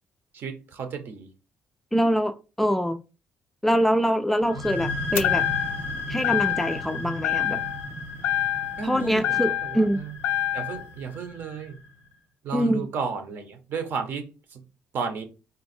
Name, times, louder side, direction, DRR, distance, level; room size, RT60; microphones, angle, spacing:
voice 1, 0.3-1.3 8.8-10.2 10.5-11.8 12.4-14.6 14.9-15.2, right 5 dB, 60° right, 0.9 m, -33 dB
voice 2, 1.9-3.0 3.6-5.4 6.1-7.6 8.8-10.0 12.5-12.8, equal, 5° left, 0.3 m, -24 dB
sound 1, 4.4-11.9, left 2 dB, 80° right, 2.0 m, -35 dB
sound 2, 5.2-5.9 6.2-6.9 7.2-7.9 8.2-9.9 10.2-10.9, left 12 dB, 85° left, 0.4 m, -26 dB
3.9 x 2.3 x 4.3 m
cardioid pair, 130°, 4 cm